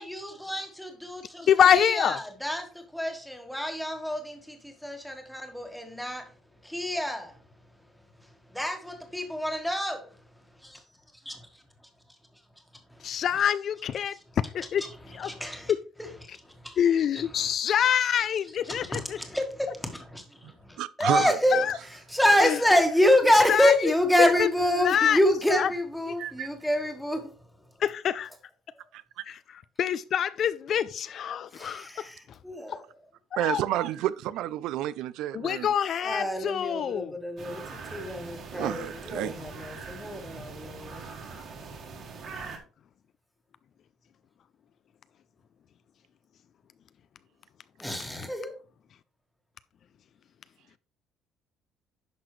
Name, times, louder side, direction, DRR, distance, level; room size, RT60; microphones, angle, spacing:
voice 1, 0.0-6.3 6.6-7.4 8.5-10.1 10.6-10.8 11.2-11.6 12.9-13.1 14.0-14.2 14.8-15.7 16.0-16.8 17.1-17.5 18.6-19.0 19.3-27.3 31.5-32.9 36.0-41.0 47.8-48.5, left 1 dB, ahead, 1.4 m, -27 dB
voice 2, 1.5-2.2 13.0-14.1 14.5-14.8 15.2-15.3 16.8-19.0 21.5-21.7 22.4-22.6 23.5-23.7 24.8-25.2 25.6-25.7 27.8-28.3 29.3-29.4 29.8-31.9 32.7-32.8 33.3-33.6 35.3-37.1, left 9 dB, 40° left, 0.3 m, -25 dB
voice 3, 20.8-21.4 26.2-26.5 28.9-29.2 33.4-35.7 38.5-39.3, right 13 dB, 75° right, 0.4 m, -30 dB
sound 1, 37.4-42.6, right 4 dB, 45° right, 2.0 m, -42 dB
10.5 x 5.9 x 3.1 m
cardioid pair, 165°, 0 cm